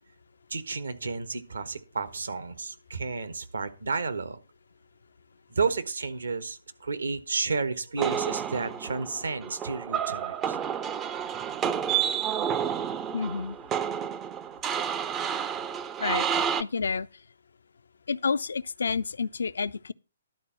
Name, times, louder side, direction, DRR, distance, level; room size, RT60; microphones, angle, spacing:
voice 1, 0.5-4.4 5.5-10.6, right 4 dB, 65° right, 1.3 m, -31 dB
sound 1, 8.0-16.6, right 8 dB, 15° right, 0.5 m, -30 dB
voice 2, 13.1-13.6 16.0-17.1 18.1-19.9, left 5 dB, 60° left, 0.5 m, -30 dB
11.5 x 4.3 x 7.3 m
figure-of-eight pair, 125°, 0 cm